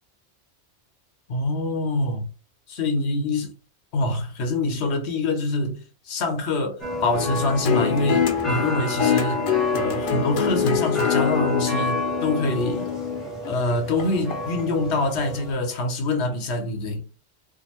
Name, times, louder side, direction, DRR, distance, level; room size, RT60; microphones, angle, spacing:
voice 1, 1.3-2.2 2.7-3.5 3.9-5.8 6.1-9.4 9.7-12.9 13.5-17.1, left 2 dB, 75° left, 1.0 m, -25 dB
sound 1, 6.8-15.5, equal, ahead, 0.8 m, -31 dB
sound 2, 7.1-14.6 15.1-15.2, left 9 dB, 60° left, 0.6 m, -25 dB
2.6 x 2.5 x 2.8 m
omnidirectional pair, 1.1 m